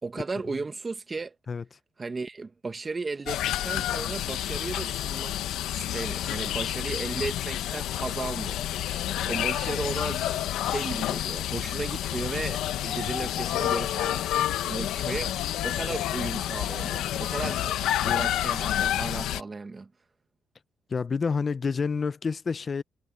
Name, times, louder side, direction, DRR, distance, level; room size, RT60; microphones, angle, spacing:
voice 1, 0.0-1.3 2.0-5.3 5.7-8.6 9.2-14.2 14.6-15.4 15.6-19.9, right 3 dB, 30° right, 1.5 m, -35 dB
sound 1, 3.3-19.4, left 12 dB, 85° left, 1.0 m, -29 dB
voice 2, 20.9-22.8, left 5 dB, 40° left, 0.5 m, -28 dB
cardioid pair, 90°, 0 cm